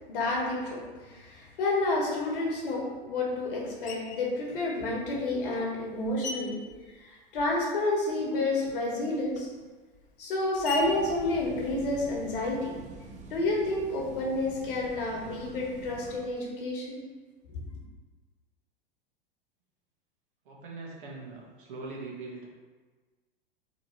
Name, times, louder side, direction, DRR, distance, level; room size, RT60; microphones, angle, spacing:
voice 1, 0.1-6.6 7.0-9.5 10.2-12.8 13.3-17.0, left 2 dB, 65° left, -2 dB, 1.5 m, -30 dB
Screech, 3.9-4.3 5.1-7.8 8.1-12.4, left 4 dB, 25° left, 0.5 m, -43 dB
sound 1, 10.8-16.2, right 2 dB, 25° right, 0.7 m, -46 dB
voice 2, 20.4-22.5, right 3 dB, 60° right, -3 dB, 1.5 m, -41 dB
3.8 x 3.2 x 4.4 m, 1.4 s
hypercardioid pair, 95°, 29 cm